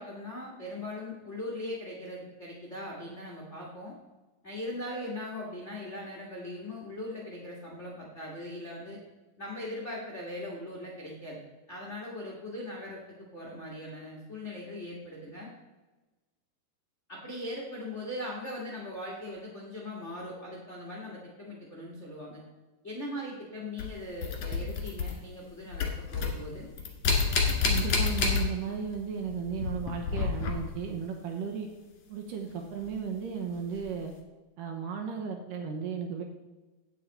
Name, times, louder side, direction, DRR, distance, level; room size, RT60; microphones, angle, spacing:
voice 1, 0.0-3.9 4.4-9.0 9.4-11.4 11.7-13.0 13.3-15.5 17.1-22.4 22.8-26.7, left 1 dB, 90° left, -3 dB, 0.6 m, -40 dB
sound 1, 23.8-25.5 25.7-28.9 29.2-30.9 32.8-32.9 33.8-33.9, left 4 dB, 55° left, 2.1 m, -29 dB
voice 2, 27.6-31.7 32.1-34.1 34.6-36.2, right 6 dB, 75° right, 2 dB, 2.1 m, -35 dB
9.2 x 8.4 x 4.2 m, 1.2 s
omnidirectional pair, 4.8 m